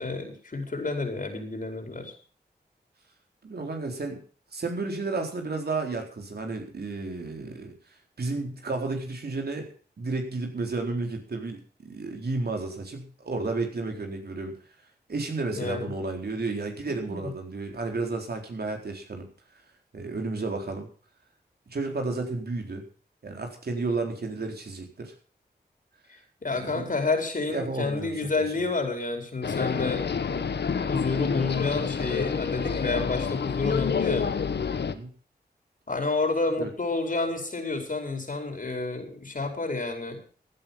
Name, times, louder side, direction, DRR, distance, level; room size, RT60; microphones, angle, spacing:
voice 1, 0.0-2.1 15.5-15.9 17.1-17.2 26.1-30.4 30.7-34.3 35.9-40.2, left 3 dB, 50° left, 4 dB, 5.0 m, -30 dB
voice 2, 3.4-4.2 4.5-7.7 8.2-9.7 10.0-14.6 15.1-19.3 19.9-20.9 21.7-22.8 23.2-25.1 26.5-26.9 27.5-28.6 34.8-35.1 36.6-36.7, right 3 dB, 70° right, 3 dB, 4.2 m, -32 dB
sound 1, 29.4-34.9, left 6 dB, 80° left, 1.3 m, -28 dB
15.5 x 10.5 x 5.6 m, 0.42 s
cardioid pair, 55°, 17 cm